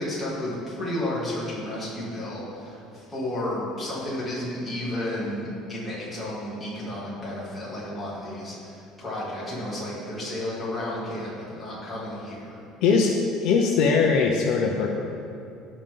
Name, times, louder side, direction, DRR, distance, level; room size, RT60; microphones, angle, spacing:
voice 1, 0.0-12.6, left 1 dB, 5° left, -9 dB, 2.6 m, -32 dB
voice 2, 12.8-13.2 13.4-14.9, left 5 dB, 55° left, 1 dB, 0.8 m, -20 dB
16.5 x 5.7 x 3.8 m, 2.6 s
cardioid pair, 175°, 0 cm